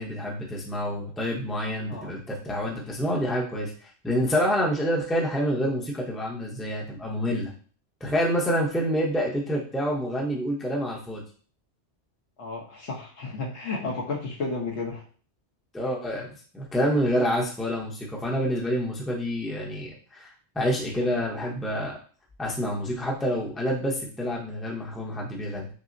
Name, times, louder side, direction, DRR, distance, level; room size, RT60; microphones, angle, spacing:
voice 1, 0.0-3.7 4.0-7.5 8.0-11.2 15.7-16.3 16.5-20.3 20.5-22.0 22.4-25.7, equal, ahead, -3 dB, 0.6 m, -27 dB
voice 2, 1.9-2.2 12.4-15.0, left 3 dB, 70° left, -1 dB, 1.2 m, -32 dB
6.0 x 2.0 x 2.6 m, 0.42 s
omnidirectional pair, 1.2 m